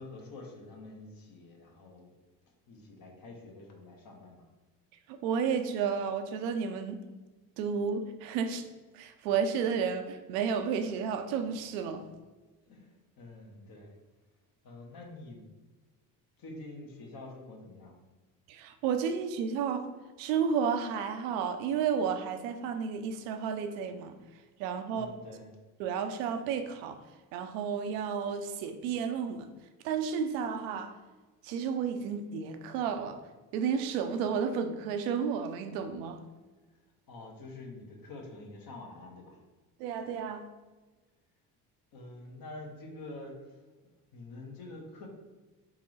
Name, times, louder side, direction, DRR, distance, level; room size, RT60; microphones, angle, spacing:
voice 1, 0.0-2.1 2.7-4.4 12.6-14.0 14.6-15.4 16.4-17.9 24.9-25.5 37.1-39.4 41.9-43.4 44.1-45.1, left 2 dB, 45° left, 1 dB, 1.2 m, -47 dB
voice 2, 5.1-7.0 7.6-8.7 8.9-12.1 18.5-19.9 20.2-24.2 24.6-25.1 25.8-27.0 27.3-29.5 29.8-30.9 31.4-33.2 33.5-36.2 39.8-40.5, right 6 dB, 65° right, 7 dB, 0.6 m, -32 dB
3.7 x 3.6 x 3.2 m, 1.2 s
hypercardioid pair, 55°, 47 cm